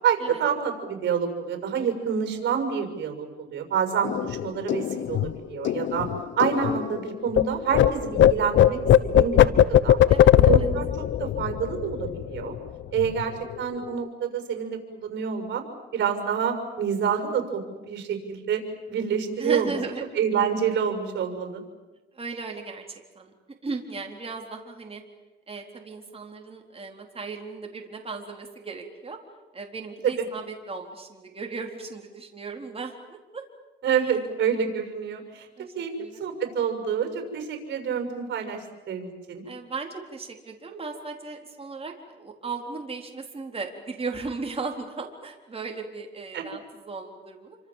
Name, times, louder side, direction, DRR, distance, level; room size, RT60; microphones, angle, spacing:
voice 1, 0.0-6.1 6.4-8.8 9.1-10.0 10.3-12.6 12.9-15.6 15.9-19.7 20.1-21.6 30.0-30.2 33.8-35.5 35.7-35.9 36.2-39.4 46.3-46.4, right 7 dB, 65° right, 5 dB, 6.4 m, -27 dB
sound 1, 4.0-7.4 7.7-12.7 13.0-13.2 13.5-14.1, left 11 dB, 70° left, 1.0 m, -20 dB
voice 2, 10.1-10.5 19.4-20.1 22.1-23.3 23.6-25.0 25.5-29.2 29.5-33.4 33.9-34.1 35.6-36.2 39.5-47.6, right 4 dB, 30° right, 2 dB, 4.0 m, -36 dB
28.0 x 25.5 x 7.5 m, 1.1 s
cardioid pair, 90°, 20 cm